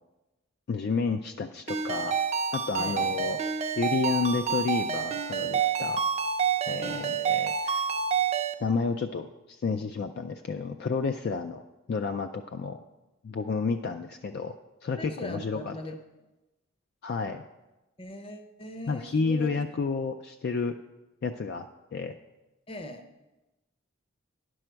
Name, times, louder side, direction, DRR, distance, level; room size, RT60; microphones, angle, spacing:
voice 1, 0.7-2.2 2.5-3.4 3.8-6.0 6.7-7.8 8.6-11.6 11.9-12.8 13.2-14.5 14.8-15.7 17.0-17.4 18.9-20.7 21.2-21.6 21.9-22.1, left 4 dB, 50° left, 7 dB, 0.3 m, -30 dB
Ringtone, 1.7-8.5, right 6 dB, 30° right, 0.5 m, -28 dB
voice 2, 2.8-3.2 6.8-7.1 15.0-16.0 18.0-19.6 22.7-23.1, left 1 dB, 25° left, 6 dB, 0.7 m, -40 dB
10.5 x 6.2 x 4.5 m, 1.0 s
head